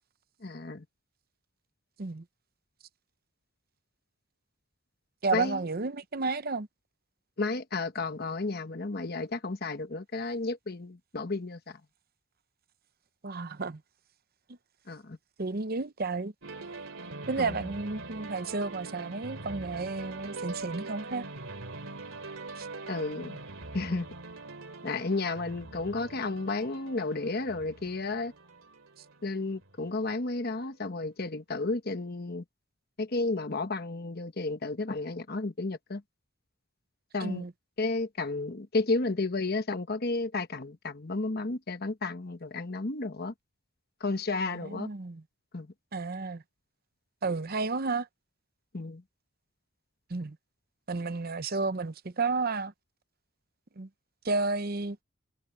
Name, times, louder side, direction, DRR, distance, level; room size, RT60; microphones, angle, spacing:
voice 1, 0.4-0.8 5.3-5.6 7.4-11.8 14.9-15.2 17.4-17.7 22.9-23.4 23.7-24.1 24.8-28.3 29.2-32.4 33.0-36.0 37.1-37.4 37.8-43.3 44.0-44.9 45.5-45.7 48.7-49.0, left 3 dB, 50° left, 1.2 m, -32 dB
voice 2, 5.2-6.7 13.2-13.8 15.4-16.3 17.3-21.2 22.6-22.7 37.2-37.5 44.5-45.2 45.9-46.4 47.2-48.1 50.1-50.4 50.9-52.7 53.8-53.9 54.2-55.0, right 3 dB, 45° right, 0.8 m, -32 dB
sound 1, 16.4-30.2, right 3 dB, 75° right, 2.6 m, -43 dB
head